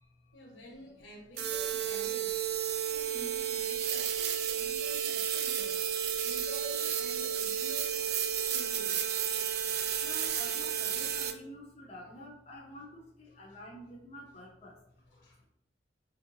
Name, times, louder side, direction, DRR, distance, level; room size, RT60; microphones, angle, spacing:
voice 1, 0.0-9.1 13.3-13.6 15.1-15.4, equal, 80° left, 0 dB, 1.1 m, -50 dB
sound 1, 1.4-11.3, right 9 dB, 60° right, 0.4 m, -32 dB
voice 2, 10.0-12.9 13.2-14.7, equal, 35° left, -3 dB, 0.6 m, -48 dB
4.7 x 2.7 x 2.6 m, 0.79 s
head